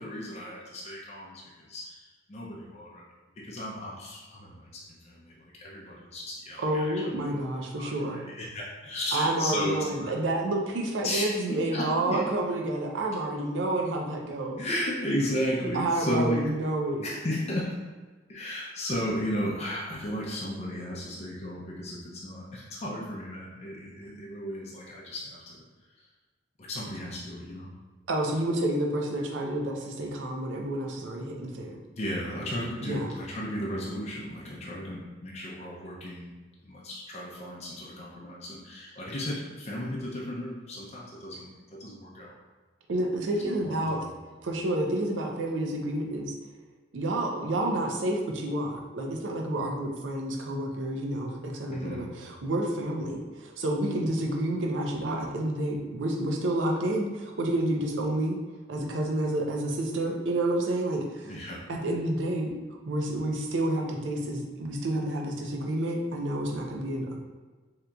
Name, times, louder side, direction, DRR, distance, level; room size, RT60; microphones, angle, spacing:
voice 1, 0.0-3.0 3.4-7.0 7.8-10.1 11.0-12.3 14.6-16.4 17.0-17.7 18.3-25.6 26.6-27.7 32.0-36.3 36.6-42.3 43.6-44.2 51.7-52.1 61.2-61.6, left 1 dB, 35° left, -4 dB, 0.5 m, -34 dB
voice 2, 6.6-8.2 9.1-14.6 15.7-17.1 28.1-31.8 32.8-33.1 42.9-44.0 44.4-46.3 46.9-58.4 58.7-61.3 61.7-62.5 62.9-67.2, right 1 dB, 85° right, 1 dB, 0.5 m, -29 dB
3.7 x 2.8 x 2.2 m, 1.3 s
head